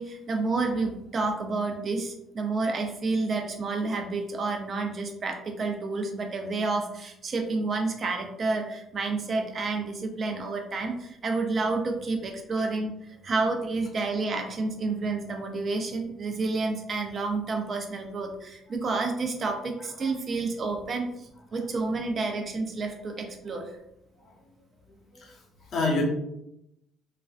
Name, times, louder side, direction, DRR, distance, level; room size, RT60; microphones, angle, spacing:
voice 1, 0.0-23.8, right 3 dB, 45° right, 3 dB, 0.5 m, -30 dB
voice 2, 24.9-25.4 25.7-26.0, left 3 dB, 60° left, -1 dB, 0.8 m, -30 dB
2.4 x 2.2 x 2.4 m, 0.81 s
supercardioid pair, 70°, 0 cm